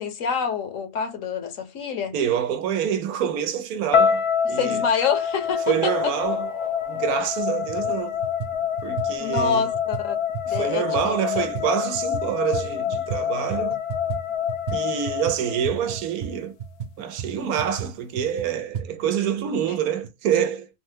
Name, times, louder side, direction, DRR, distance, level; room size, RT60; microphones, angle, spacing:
voice 1, 0.0-2.1 4.4-6.1 9.2-10.2 10.5-11.5, left 6 dB, 65° left, 1.1 m, -27 dB
voice 2, 2.1-4.8 5.7-6.5 6.9-8.2 8.8-9.7 10.5-13.8 14.7-16.6 17.0-20.7, right 9 dB, 90° right, 1.1 m, -26 dB
sound 1, 3.7-8.5, left 2 dB, 45° left, 0.6 m, -41 dB
sound 2, 3.9-16.1, left 8 dB, 90° left, 1.1 m, -26 dB
sound 3, 7.1-7.2 7.6-8.0 8.2-13.2 13.5-18.9, right 8 dB, 55° right, 0.9 m, -34 dB
3.3 x 2.1 x 3.2 m
omnidirectional pair, 1.5 m